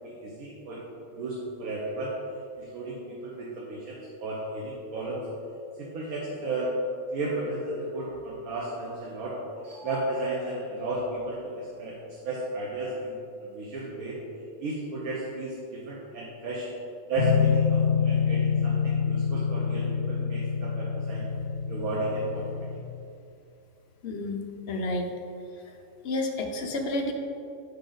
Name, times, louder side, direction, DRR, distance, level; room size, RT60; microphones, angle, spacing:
voice 1, 0.2-0.8 1.1-2.1 2.6-5.2 5.8-6.7 7.1-9.4 9.6-11.9 12.2-14.2 14.6-16.7 17.1-21.2 21.7-22.7, right 2 dB, 75° right, -4 dB, 1.3 m, -33 dB
sound 1, 17.2-22.8, left 7 dB, 85° left, 1.3 m, -26 dB
voice 2, 24.0-24.4 24.7-25.1 26.0-27.1, left 2 dB, 55° left, 2 dB, 0.8 m, -30 dB
7.0 x 5.0 x 3.9 m, 2.6 s
omnidirectional pair, 1.5 m